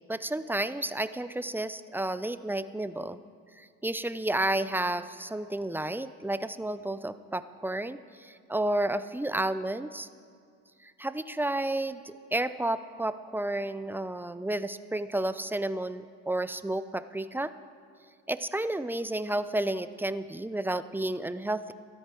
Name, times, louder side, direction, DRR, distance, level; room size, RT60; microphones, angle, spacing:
voice 1, 0.1-3.2 3.6-10.1 10.8-17.5 18.3-21.7, right 1 dB, 5° right, 13 dB, 0.4 m, -31 dB
14.5 x 12.0 x 4.4 m, 2.1 s
cardioid pair, 90°, 30 cm